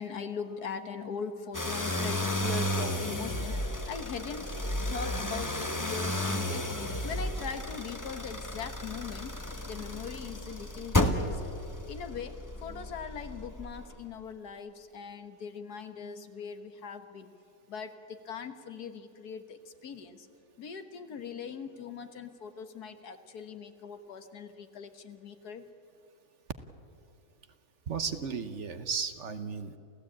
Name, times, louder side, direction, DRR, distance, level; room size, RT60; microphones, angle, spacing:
voice 1, 0.0-4.5 4.9-6.6 7.0-9.4 9.6-11.5 11.9-17.3 17.7-20.3 20.6-25.6, left 6 dB, 80° left, 9 dB, 1.8 m, -41 dB
sound 1, 1.5-13.9, left 1 dB, 15° left, 1.1 m, -33 dB
voice 2, 27.9-29.8, right 5 dB, 55° right, 10 dB, 1.1 m, -34 dB
28.5 x 15.5 x 8.7 m, 2.7 s
omnidirectional pair, 1.7 m